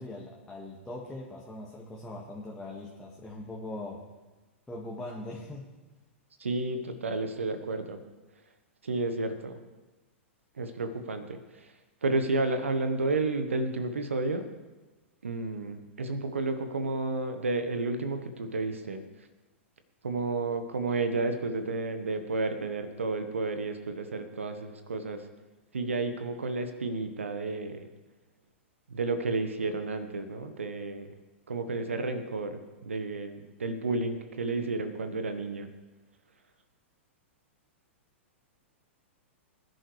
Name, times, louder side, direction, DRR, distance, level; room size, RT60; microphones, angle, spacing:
voice 1, 0.0-4.0 4.7-5.7, left 2 dB, 10° left, -4 dB, 1.9 m, -41 dB
voice 2, 6.4-8.0 8.8-9.6 10.6-11.7 12.0-14.5 15.2-19.0 20.0-25.3 25.7-27.9 28.9-31.1 31.5-35.7, right 3 dB, 80° right, 8 dB, 1.3 m, -31 dB
21.0 x 11.0 x 3.3 m, 1.2 s
figure-of-eight pair, 105°, 7 cm